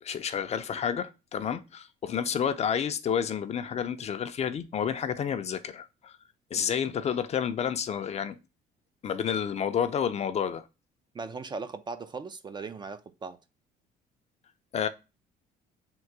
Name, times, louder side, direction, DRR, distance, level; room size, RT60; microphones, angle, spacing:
voice 1, 0.0-6.2 6.5-8.4 9.0-10.7 14.7-14.9, left 8 dB, 40° left, 0.5 m, -30 dB
voice 2, 11.1-13.4, right 4 dB, 25° right, 0.4 m, -38 dB
3.7 x 2.6 x 4.5 m
cardioid pair, 110°, 17 cm